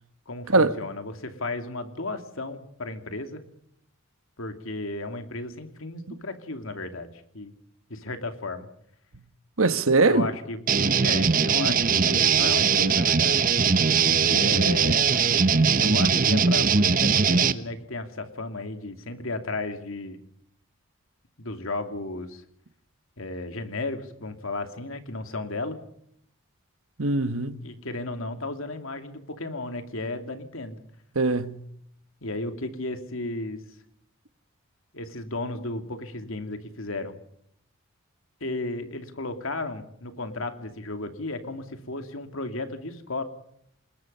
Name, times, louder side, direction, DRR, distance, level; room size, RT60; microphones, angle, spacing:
voice 1, 0.3-3.4 4.4-7.1 7.3-7.5 7.9-8.7 10.0-10.6 11.0-13.5 14.2-15.1 15.8-20.2 21.4-22.4 23.2-25.8 27.6-30.8 32.2-33.6 34.9-37.2 38.4-43.2, left 2 dB, 70° left, 2.6 m, -34 dB
voice 2, 9.6-10.3 27.0-27.7 31.1-31.7, right 3 dB, 75° right, 1.3 m, -22 dB
sound 1, 10.7-17.5, right 6 dB, 40° right, 1.0 m, -21 dB
27.5 x 20.5 x 5.6 m
head